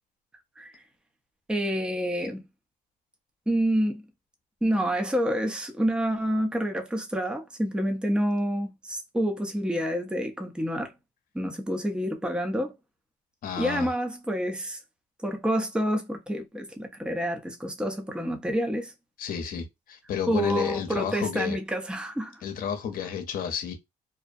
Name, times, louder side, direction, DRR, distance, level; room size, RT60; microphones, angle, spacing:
voice 1, 1.5-2.4 3.5-4.0 4.6-10.9 11.3-12.7 13.6-14.8 15.2-18.9 20.3-22.4, equal, 5° right, 0.6 m, -28 dB
voice 2, 13.4-13.9 19.2-21.6 22.4-23.8, left 8 dB, 55° left, 0.8 m, -31 dB
2.5 x 2.2 x 2.5 m
cardioid pair, 110°, 17 cm